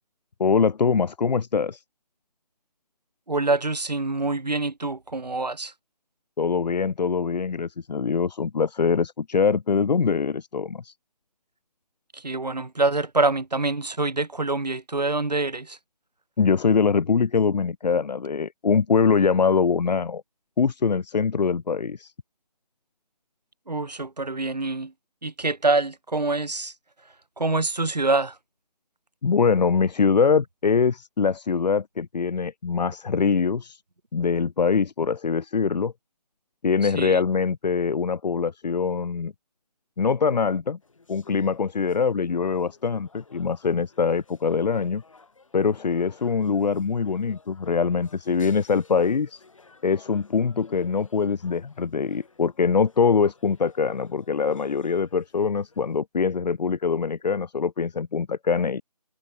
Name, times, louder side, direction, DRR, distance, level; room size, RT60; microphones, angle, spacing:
voice 1, 0.4-1.8 6.4-10.9 16.4-20.2 20.6-22.1 29.2-33.8 34.1-35.9 36.6-39.3 40.0-40.8 41.1-45.0 45.5-49.4 49.8-58.8, left 5 dB, 75° left, 0.4 m, -23 dB
voice 2, 3.3-5.7 12.1-15.8 23.7-24.9 25.2-26.7 27.4-28.4 36.8-37.2, right 3 dB, 75° right, 1.6 m, -25 dB
sound 1, 40.8-56.0, left 4 dB, 50° left, 6.4 m, -56 dB
figure-of-eight pair, 155°, 21 cm